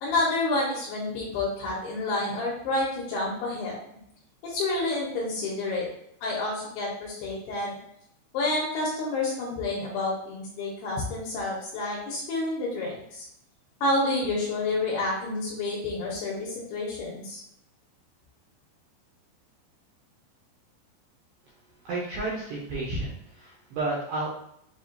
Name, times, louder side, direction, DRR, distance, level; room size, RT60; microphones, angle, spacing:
voice 1, 0.0-3.8 4.4-5.9 6.2-7.8 8.3-13.3 13.8-17.4, left 2 dB, 75° left, -4 dB, 2.6 m, -29 dB
voice 2, 21.9-24.3, right 2 dB, 80° right, -5 dB, 2.3 m, -31 dB
7.2 x 2.4 x 2.7 m, 0.73 s
omnidirectional pair, 5.4 m